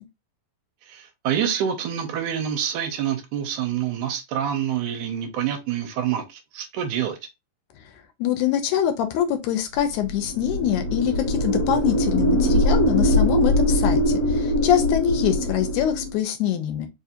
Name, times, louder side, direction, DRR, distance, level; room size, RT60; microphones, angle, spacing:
voice 1, 0.9-7.2, right 9 dB, 80° right, 2.1 m, -27 dB
voice 2, 8.2-16.9, left 10 dB, 80° left, 1.9 m, -24 dB
sound 1, 10.0-16.2, equal, 60° left, 1.9 m, -22 dB
4.8 x 2.5 x 2.8 m
omnidirectional pair, 3.7 m